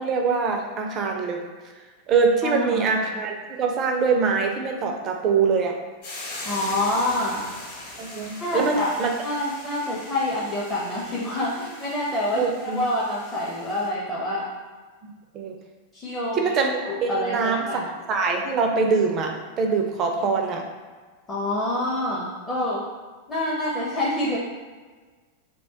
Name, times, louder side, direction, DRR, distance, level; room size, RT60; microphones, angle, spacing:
voice 1, 0.0-1.4 2.1-5.8 8.0-9.1 12.4-12.8 15.0-15.6 16.3-20.6, right 4 dB, 35° right, 3 dB, 0.4 m, -24 dB
voice 2, 2.4-2.9 6.4-7.5 8.4-9.0 9.2-14.5 15.9-16.4 16.9-17.9 21.3-22.9 23.3-24.4, left 1 dB, 20° left, -6 dB, 0.5 m, -27 dB
Hiss / Boiling, 6.0-13.9, left 2 dB, 50° left, 0.9 m, -40 dB
2.4 x 2.2 x 3.4 m, 1.4 s
figure-of-eight pair, 90°, 0 cm